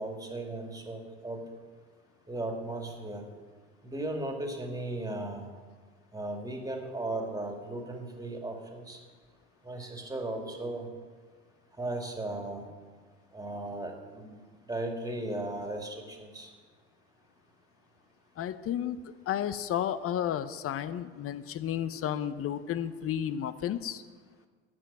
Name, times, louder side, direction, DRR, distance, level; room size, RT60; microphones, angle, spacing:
voice 1, 0.0-1.4 2.3-3.3 3.8-5.5 6.1-9.0 9.6-10.9 11.8-12.7 13.3-16.5, right 2 dB, 10° right, 2 dB, 2.3 m, -36 dB
voice 2, 18.4-24.0, left 10 dB, 45° left, 14 dB, 0.8 m, -32 dB
11.0 x 6.1 x 7.6 m, 1.5 s
hypercardioid pair, 70°, 33 cm